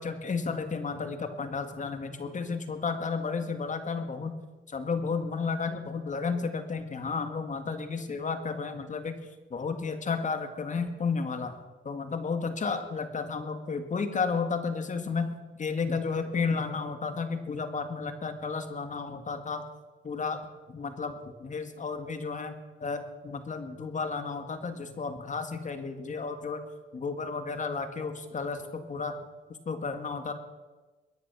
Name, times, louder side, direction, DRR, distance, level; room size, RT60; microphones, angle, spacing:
voice 1, 0.0-4.4 4.7-9.2 9.5-11.6 11.8-19.7 20.0-20.4 20.7-26.6 26.9-29.1 29.7-30.3, left 4 dB, 40° left, 7 dB, 2.1 m, -32 dB
22.0 x 9.9 x 6.2 m, 1.3 s
cardioid pair, 90°, 20 cm